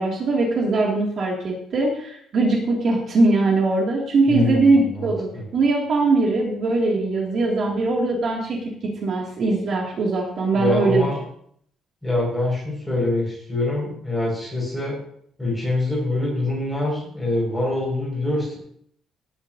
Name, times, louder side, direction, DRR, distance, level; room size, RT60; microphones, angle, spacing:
voice 1, 0.0-8.7 9.0-11.1, right 3 dB, 45° right, -2 dB, 2.4 m, -21 dB
voice 2, 4.3-5.4 10.5-11.2 12.0-15.0 15.4-18.6, left 2 dB, 5° left, -4 dB, 5.6 m, -24 dB
18.5 x 10.5 x 2.7 m, 0.65 s
cardioid pair, 175°, 0 cm